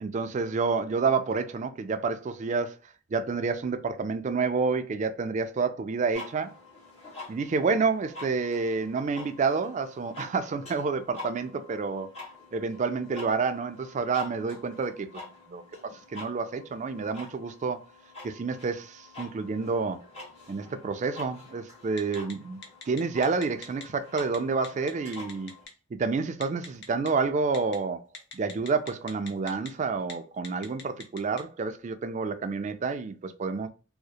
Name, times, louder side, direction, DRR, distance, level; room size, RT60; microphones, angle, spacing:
voice 1, 0.0-2.8 3.1-6.5 7.3-12.1 12.5-15.1 15.5-17.8 18.2-20.0 20.5-22.6 22.9-25.5 25.9-28.0 28.3-33.7, right 4 dB, 35° right, 0.3 m, -29 dB
sound 1, 6.1-25.6, left 3 dB, 35° left, 1.3 m, -47 dB
Telephone, 22.0-22.3 22.6-23.8 24.2-24.4 24.6-25.7 26.4-27.1 27.5-27.8 28.1-29.7 30.0-30.1 30.4-31.4, left 5 dB, 60° left, 0.6 m, -41 dB
2.7 x 2.0 x 2.3 m
head